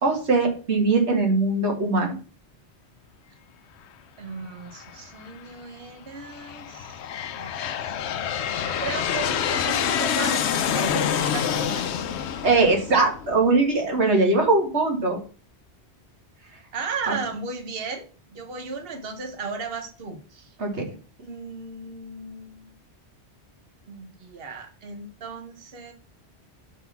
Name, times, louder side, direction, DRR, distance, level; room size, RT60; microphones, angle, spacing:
voice 1, 0.0-2.1 12.4-15.2 17.1-17.2 20.6-20.8, right 3 dB, 80° right, 1 dB, 2.1 m, -21 dB
voice 2, 4.2-7.0 7.3-7.5 8.0-8.1 8.5-11.9 16.7-20.5 21.2-22.7 23.9-25.9, right 4 dB, 60° right, 5 dB, 1.3 m, -35 dB
Aircraft, 4.8-5.3 6.0-13.6, left 8 dB, 75° left, 0.9 m, -27 dB
6.2 x 4.1 x 5.5 m, 0.37 s
omnidirectional pair, 1.1 m